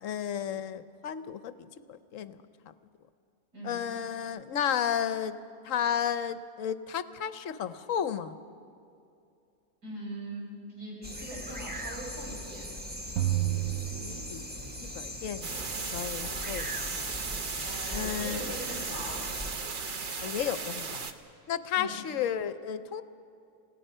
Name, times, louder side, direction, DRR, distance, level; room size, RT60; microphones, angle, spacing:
voice 1, 0.0-2.4 2.7-2.8 3.6-5.4 5.6-8.3 13.9-14.4 14.8-17.1 17.9-18.5 20.2-21.1 21.5-23.0, left 9 dB, 60° left, 13 dB, 1.0 m, -33 dB
voice 2, 9.8-12.7 17.7-19.2 21.8-22.0, right 1 dB, 85° right, -4 dB, 5.6 m, -41 dB
sound 1, 11.0-19.5, equal, 5° right, 1.2 m, -40 dB
sound 2, 13.2-14.9, right 15 dB, 70° right, 1.0 m, -31 dB
sound 3, 15.4-21.1, right 4 dB, 40° right, 0.9 m, -36 dB
28.5 x 17.5 x 5.5 m, 2.5 s
omnidirectional pair, 1.7 m